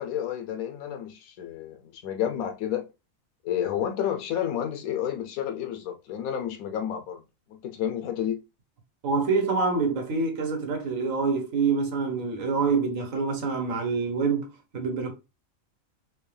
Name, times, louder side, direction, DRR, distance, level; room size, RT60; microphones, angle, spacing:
voice 1, 0.0-2.8 3.4-7.2 7.5-8.4, left 10 dB, 90° left, 1.1 m, -30 dB
voice 2, 9.0-15.1, right 4 dB, 70° right, 1.4 m, -26 dB
4.2 x 2.3 x 3.3 m
omnidirectional pair, 1.4 m